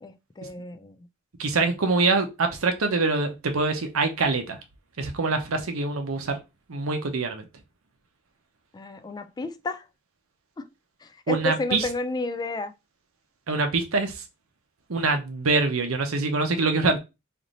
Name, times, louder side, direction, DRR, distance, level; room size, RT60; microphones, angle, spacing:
voice 1, 0.0-1.0 8.7-9.8 10.6-10.7 11.0-12.7, left 3 dB, 20° left, 0.3 m, -31 dB
voice 2, 1.4-4.6 5.0-6.4 6.7-7.4 11.3-11.8 13.5-14.2 14.9-17.0, right 3 dB, 85° right, 0.8 m, -24 dB
3.2 x 2.6 x 3.9 m
head